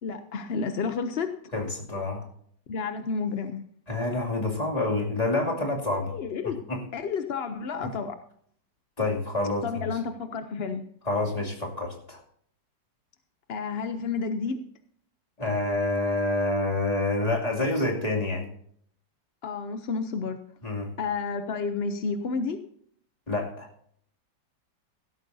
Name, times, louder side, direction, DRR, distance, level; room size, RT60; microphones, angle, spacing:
voice 1, 0.0-1.3 2.7-3.6 6.1-6.6 6.9-8.2 9.6-10.8 13.5-14.6 19.4-20.4 21.0-22.6, left 5 dB, 60° left, 9 dB, 0.6 m, -30 dB
voice 2, 1.5-2.3 3.9-6.2 6.7-6.8 7.8-7.9 9.0-9.9 11.0-12.2 15.4-18.5 20.6-20.9 23.3-23.7, left 2 dB, 20° left, -1 dB, 2.7 m, -27 dB
16.0 x 13.0 x 2.7 m, 0.64 s
omnidirectional pair, 1.9 m